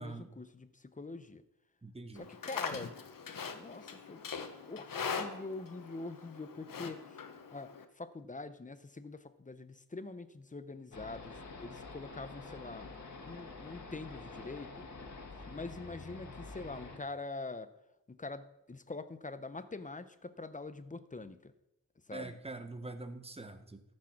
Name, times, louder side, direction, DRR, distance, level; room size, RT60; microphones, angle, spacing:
voice 1, 0.0-1.4 2.1-2.9 3.5-4.2 4.6-7.2 7.5-14.9 15.5-17.7 18.1-21.5 22.1-22.4, left 3 dB, 25° left, 12 dB, 0.7 m, -44 dB
voice 2, 1.8-2.3 22.1-23.8, right 2 dB, 20° right, 9 dB, 0.9 m, -44 dB
Livestock farm animals working animals, 2.2-7.8, left 5 dB, 75° left, 1.1 m, -42 dB
sound 1, 10.9-17.0, left 3 dB, 55° left, 1.8 m, -48 dB
13.5 x 6.3 x 6.0 m, 0.91 s
wide cardioid pair, 90°, 33 cm